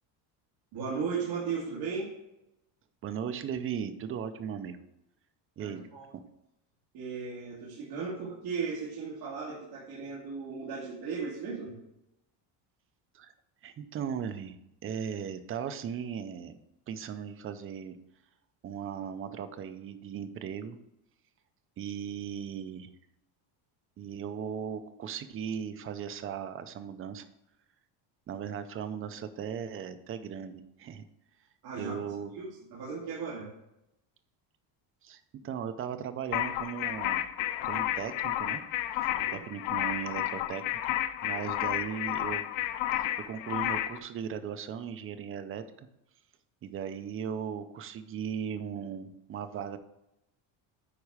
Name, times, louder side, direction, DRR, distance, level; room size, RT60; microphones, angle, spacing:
voice 1, 0.7-2.1 5.6-6.1 6.9-11.7 31.6-32.0 32.3-33.5 39.1-39.4 41.3-41.5, right 5 dB, 50° right, -7 dB, 2.5 m, -36 dB
voice 2, 3.0-4.8 5.6-5.9 13.1-13.3 13.6-14.6 14.8-16.6 16.9-18.0 18.6-20.8 21.8-22.9 24.0-27.2 28.3-31.0 31.8-32.3 35.0-37.2 37.6-38.6 39.0-40.9 41.2-42.4 43.2-45.9 46.6-49.8, right 8 dB, 30° right, 10 dB, 0.6 m, -37 dB
sound 1, 36.3-44.0, left 13 dB, 80° left, 0.7 m, -31 dB
9.7 x 4.2 x 4.8 m, 0.87 s
cardioid pair, 155°, 46 cm